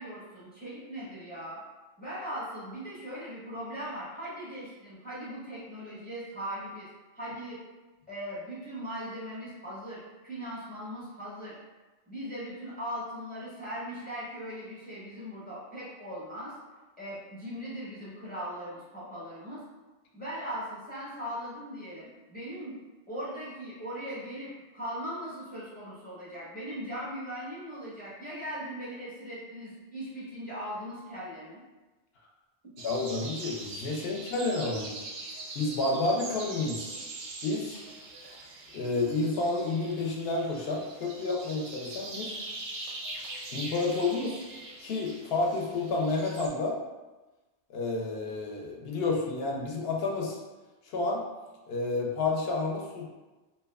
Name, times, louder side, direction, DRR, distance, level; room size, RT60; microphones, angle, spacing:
voice 1, 0.0-1.6 2.0-6.9 7.1-7.6 8.1-11.6 12.1-16.5 17.0-19.6 20.1-22.8 23.1-31.6, equal, 10° left, -9 dB, 0.6 m, -39 dB
voice 2, 32.8-34.9 35.5-37.0 37.4-37.8 38.7-42.4 43.5-44.4 44.8-46.8 47.7-50.4 50.9-51.2 51.7-53.1, left 3 dB, 70° left, -1 dB, 0.7 m, -30 dB
sound 1, 32.8-46.5, right 2 dB, 85° right, 0.9 m, -42 dB
2.7 x 2.2 x 2.3 m, 1.2 s
omnidirectional pair, 1.1 m